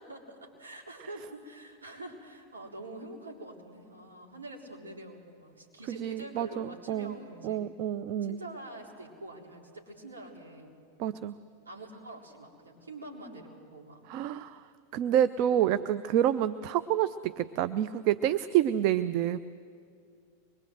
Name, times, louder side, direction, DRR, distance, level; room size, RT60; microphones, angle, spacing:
voice 1, 0.0-7.6 8.2-10.7 11.7-14.1, right 1 dB, 75° right, -1 dB, 4.1 m, -45 dB
voice 2, 5.9-7.1 7.4-8.4 11.0-11.3 14.1-14.6 14.9-19.4, right 11 dB, 45° right, 12 dB, 0.5 m, -28 dB
24.0 x 22.5 x 7.9 m, 2.3 s
figure-of-eight pair, 90°, 0 cm